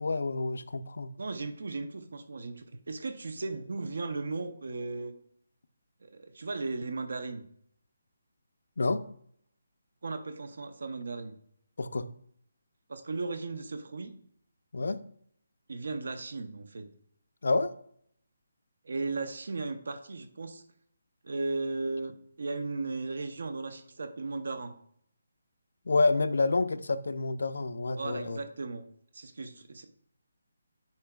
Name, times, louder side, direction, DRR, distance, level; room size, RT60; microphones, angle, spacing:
voice 1, 0.0-1.1 8.8-9.0 11.8-12.1 14.7-15.0 17.4-17.7 25.9-28.4, left 3 dB, 75° left, 11 dB, 0.4 m, -28 dB
voice 2, 1.2-5.1 6.1-7.4 10.0-11.4 12.9-14.1 15.7-16.9 18.8-20.6 21.2-24.7 28.0-28.8 29.1-29.9, right 3 dB, 65° right, 8 dB, 0.6 m, -36 dB
9.4 x 4.4 x 2.3 m, 0.66 s
hypercardioid pair, 170°, 0 cm